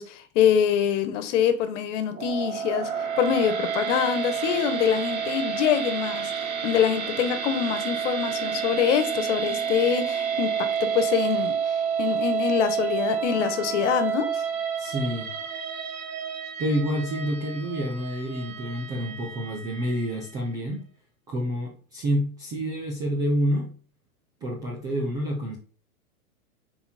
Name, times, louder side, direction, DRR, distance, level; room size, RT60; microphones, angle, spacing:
voice 1, 0.0-2.9 3.2-6.3 6.6-11.6 12.0-14.4, left 9 dB, 55° left, 1.4 m, -25 dB
sound 1, 2.1-20.4, right 7 dB, 70° right, 1.6 m, -29 dB
voice 2, 14.8-15.3 16.6-20.8 21.3-23.8 24.4-25.6, equal, 10° right, 0.3 m, -28 dB
7.1 x 4.5 x 4.3 m
hypercardioid pair, 135°, 44 cm